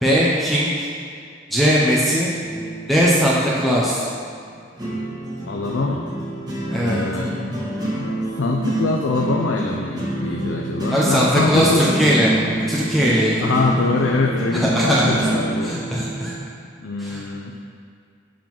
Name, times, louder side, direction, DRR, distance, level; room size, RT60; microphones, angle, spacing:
voice 1, 0.0-0.9 1.5-2.3 2.9-4.1 6.7-7.0 10.9-12.3 12.7-13.6 14.5-15.1 15.6-16.3 17.0-17.2, equal, ahead, -6 dB, 0.7 m, -19 dB
sound 1, 2.4-16.4, right 1 dB, 20° right, 1.4 m, -27 dB
voice 2, 5.5-6.1 6.8-7.3 8.0-12.0 13.4-15.8 16.8-17.5, left 3 dB, 80° left, 0 dB, 0.5 m, -23 dB
7.2 x 3.7 x 5.9 m, 2.3 s
head